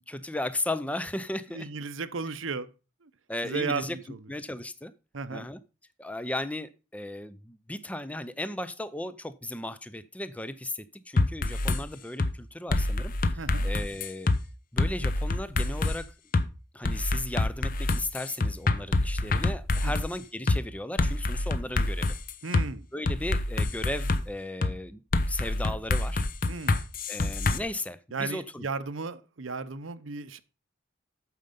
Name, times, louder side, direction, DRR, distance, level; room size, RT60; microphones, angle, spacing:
voice 1, 0.0-1.7 3.3-4.0 4.3-4.9 5.3-5.6 6.0-14.3 14.7-16.1 16.7-22.2 22.9-25.0 25.3-26.2 27.1-28.7, left 1 dB, 5° left, 0.5 m, -36 dB
voice 2, 1.5-2.7 3.0-3.1 3.4-4.2 5.1-5.5 13.4-13.7 19.8-19.9 22.4-22.9 26.5-26.8 28.1-30.4, right 4 dB, 75° right, 0.8 m, -34 dB
sound 1, 11.2-11.8 12.2-12.3 12.7-14.4 14.8-16.0 16.3-16.5 16.8-20.1 20.5-20.6 21.0-22.7 23.1-24.2 24.6-24.7 25.1-27.6, left 2 dB, 45° left, 0.7 m, -26 dB
9.3 x 6.6 x 5.2 m
head